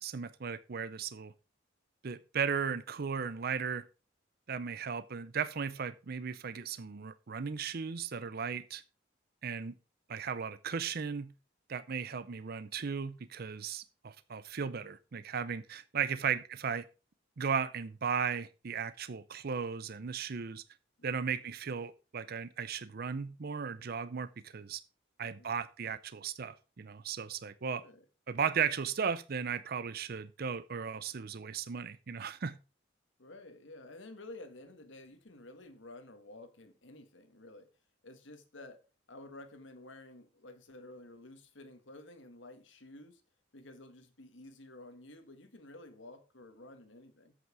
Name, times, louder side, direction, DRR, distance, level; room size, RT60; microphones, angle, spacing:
voice 1, 0.0-1.3 2.0-3.8 4.5-8.8 9.4-9.7 10.1-11.3 11.7-16.9 17.4-20.6 21.0-24.8 25.2-27.8 28.3-32.6, right 6 dB, 50° right, 0.5 m, -36 dB
voice 2, 25.2-25.6 27.8-28.0 33.2-37.7 38.0-38.8 39.1-43.2 43.5-47.4, left 2 dB, 70° left, 1.7 m, -52 dB
8.2 x 7.7 x 4.8 m
head